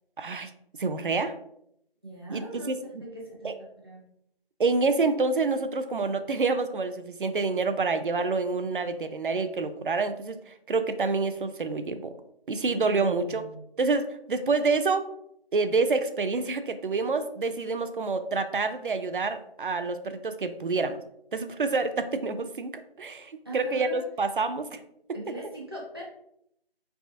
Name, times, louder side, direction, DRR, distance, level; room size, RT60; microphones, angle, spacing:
voice 1, 0.2-0.5 0.8-1.3 2.3-2.8 3.4-3.6 4.6-12.1 12.5-13.5 13.8-15.1 15.5-21.0 21.3-24.8, right 4 dB, 60° right, 10 dB, 0.4 m, -27 dB
voice 2, 2.0-2.7 3.0-3.5 3.8-4.0 12.6-13.7 23.4-24.0 25.1-26.0, right 1 dB, 25° right, -5 dB, 0.8 m, -41 dB
4.0 x 3.4 x 2.7 m, 0.75 s
figure-of-eight pair, 175°, 30 cm